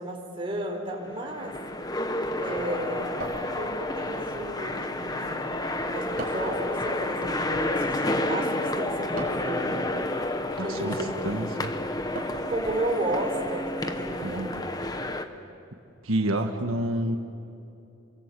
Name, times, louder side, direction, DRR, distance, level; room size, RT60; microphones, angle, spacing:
voice 1, 0.0-1.6 2.4-5.5 5.9-9.9 10.6-11.1 12.5-14.7 16.2-16.3, right 1 dB, 25° right, 0 dB, 4.1 m, -33 dB
sound 1, 0.9-15.3, left 1 dB, 20° left, 1.0 m, -30 dB
sound 2, 3.2-4.1 6.2-6.6 9.2-9.6 12.2-12.6, right 2 dB, 45° right, 5.1 m, -38 dB
voice 2, 10.6-11.0 11.2-11.7 14.2-14.5 16.0-17.2, right 1 dB, 90° right, 5 dB, 1.5 m, -28 dB
28.5 x 23.5 x 8.4 m, 2.8 s
head